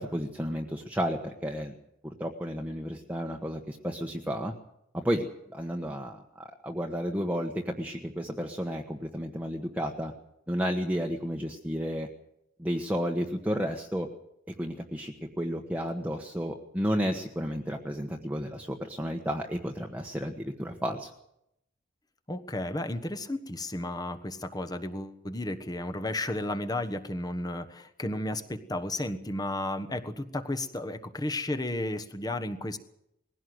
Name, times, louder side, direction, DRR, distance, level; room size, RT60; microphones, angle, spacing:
voice 1, 0.0-1.7 2.0-4.5 4.9-6.2 6.6-10.1 10.5-12.1 12.6-14.1 14.6-21.1, equal, 10° right, 1 dB, 1.2 m, -32 dB
voice 2, 22.3-32.8, left 1 dB, 20° left, 8 dB, 1.3 m, -33 dB
20.5 x 16.5 x 7.9 m, 0.80 s
head